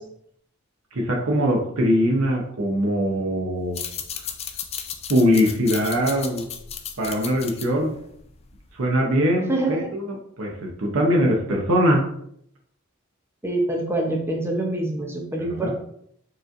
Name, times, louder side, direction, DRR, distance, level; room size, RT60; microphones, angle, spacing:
voice 1, 0.9-3.8 5.1-6.5 7.0-8.0 8.7-12.1 15.4-15.7, equal, 70° right, 0 dB, 0.8 m, -22 dB
sound 1, 3.6-8.8, left 8 dB, 30° left, 0.3 m, -35 dB
voice 2, 9.5-9.9 13.4-15.8, right 2 dB, 10° right, 1 dB, 0.7 m, -25 dB
4.9 x 3.1 x 2.5 m, 0.69 s
head